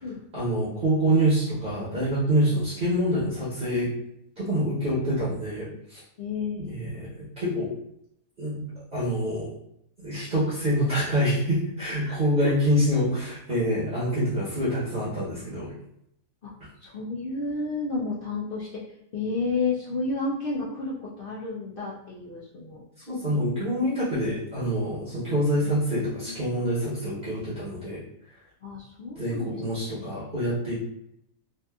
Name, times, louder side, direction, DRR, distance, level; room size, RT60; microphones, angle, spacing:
voice 1, 0.3-3.9 4.4-6.0 6.7-7.1 7.4-7.7 8.4-9.5 10.0-15.7 23.1-28.0 29.1-30.9, equal, 40° right, -9 dB, 0.9 m, -26 dB
voice 2, 6.2-6.8 12.0-12.2 12.4-12.5 16.4-16.5 16.8-18.8 19.1-22.8 25.6-25.8 26.1-26.5 28.6-29.6 30.0-30.2, left 3 dB, 60° left, -6 dB, 0.6 m, -31 dB
2.6 x 2.5 x 2.3 m, 0.76 s
omnidirectional pair, 1.4 m